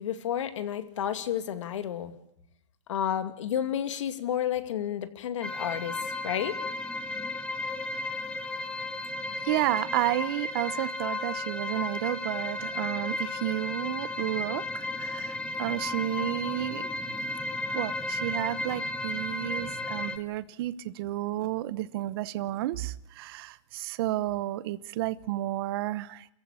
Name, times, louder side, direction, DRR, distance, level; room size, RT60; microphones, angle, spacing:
voice 1, 0.0-2.1 2.9-6.0 6.2-6.6, left 10 dB, 75° left, 9 dB, 2.5 m, -31 dB
sound 1, 5.4-20.2, left 2 dB, 5° left, 1.6 m, -34 dB
voice 2, 9.4-16.9 17.7-26.3, right 15 dB, 50° right, 16 dB, 0.9 m, -31 dB
28.5 x 15.5 x 8.4 m, 0.76 s
supercardioid pair, 150°, 16 cm